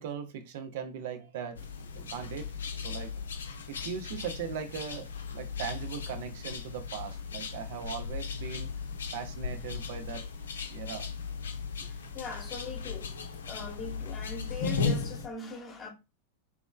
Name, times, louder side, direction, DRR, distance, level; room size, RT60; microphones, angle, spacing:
voice 1, 0.0-1.6 1.9-3.1 3.7-8.7 9.1-10.3 10.7-11.1, right 7 dB, 50° right, 0.5 m, -39 dB
sound 1, 1.6-15.3, left 5 dB, 65° left, 0.5 m, -37 dB
voice 2, 11.8-13.1 13.5-15.9, left 4 dB, 20° left, 1.0 m, -41 dB
3.3 x 3.0 x 2.2 m
figure-of-eight pair, 90°, 0 cm